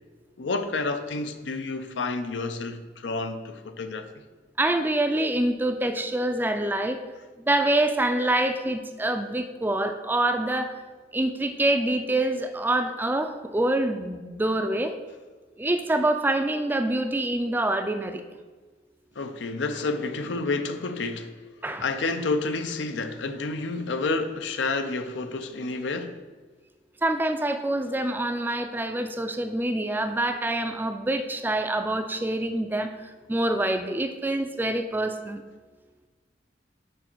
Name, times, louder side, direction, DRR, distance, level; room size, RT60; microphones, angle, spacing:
voice 1, 0.4-4.1 19.2-21.5 21.8-26.2, left 3 dB, 90° left, 0.6 m, -29 dB
voice 2, 4.6-7.0 7.4-10.7 11.1-14.9 15.6-18.2 21.6-21.8 27.0-35.4, right 1 dB, 10° right, 0.4 m, -26 dB
6.3 x 5.0 x 4.5 m
head